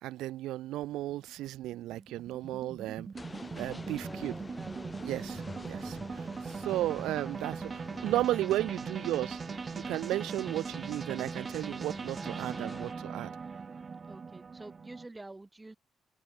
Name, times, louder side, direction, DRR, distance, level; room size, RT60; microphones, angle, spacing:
voice 1, 0.0-3.1 3.6-4.3 5.0-13.3, right 15 dB, 90° right, 1.0 m, -34 dB
sound 1, 0.8-15.1, right 5 dB, 35° right, 0.4 m, -40 dB
sound 2, 3.1-12.9, left 3 dB, 20° left, 4.4 m, -47 dB
voice 2, 3.7-4.9 14.0-15.8, right 2 dB, 15° right, 7.3 m, -48 dB
open air
cardioid pair, 90°, 0 cm